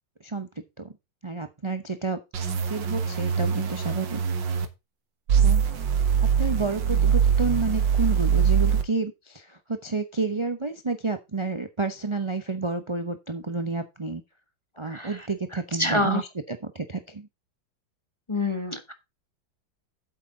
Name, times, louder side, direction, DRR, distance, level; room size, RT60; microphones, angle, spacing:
voice 1, 1.2-2.2 2.7-4.2 5.3-5.6 6.4-14.2 14.8-17.3, right 3 dB, 30° right, 8 dB, 0.5 m, -30 dB
sound 1, 2.3-4.7 5.3-8.8, right 7 dB, 70° right, 2.0 m, -23 dB
voice 2, 14.8-15.2 15.8-16.2 18.3-18.9, left 2 dB, 20° left, 8 dB, 1.0 m, -26 dB
8.5 x 8.2 x 3.9 m, 0.24 s
omnidirectional pair, 2.0 m